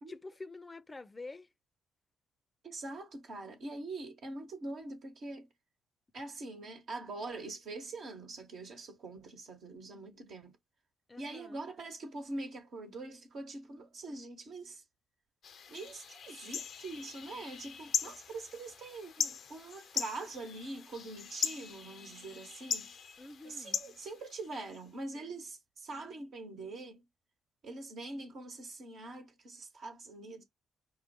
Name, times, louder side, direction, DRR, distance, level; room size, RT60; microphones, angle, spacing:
voice 1, 0.1-1.5 11.1-11.6 23.2-23.8, left 3 dB, 25° left, 0.7 m, -47 dB
voice 2, 2.6-5.5 6.1-10.6 11.2-14.8 15.7-22.9 23.4-27.0 27.6-30.4, right 2 dB, 60° right, 1.2 m, -44 dB
sound 1, 15.4-24.8, left 7 dB, 60° left, 0.7 m, -40 dB
5.4 x 2.2 x 2.9 m
figure-of-eight pair, 40°, 0 cm